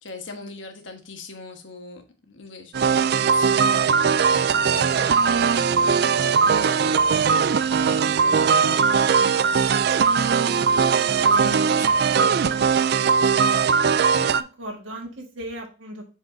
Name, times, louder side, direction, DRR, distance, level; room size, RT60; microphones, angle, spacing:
voice 1, 0.0-9.5 10.1-10.6 10.9-12.3, left 3 dB, 75° left, 5 dB, 1.4 m, -40 dB
sound 1, 2.7-14.4, right 6 dB, 55° right, 0.3 m, -20 dB
voice 2, 7.5-8.0 11.6-12.7 14.1-16.1, right 1 dB, 85° right, 0 dB, 1.7 m, -38 dB
7.5 x 4.8 x 2.7 m, 0.33 s
head